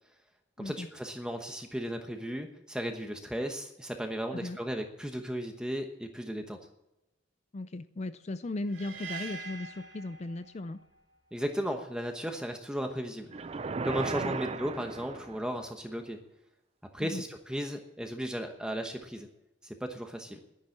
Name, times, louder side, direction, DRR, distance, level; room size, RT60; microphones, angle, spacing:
voice 1, 0.6-6.6 11.3-13.3 13.8-16.2 16.9-19.3 19.6-20.4, equal, 5° right, 4 dB, 1.0 m, -35 dB
voice 2, 7.5-10.8 14.2-14.4 17.0-17.2, left 2 dB, 40° left, 12 dB, 0.5 m, -37 dB
sound 1, 8.7-10.8, right 5 dB, 90° right, 3.9 m, -43 dB
sound 2, 13.3-15.6, right 4 dB, 35° right, 0.5 m, -36 dB
10.5 x 10.5 x 8.3 m, 0.91 s
head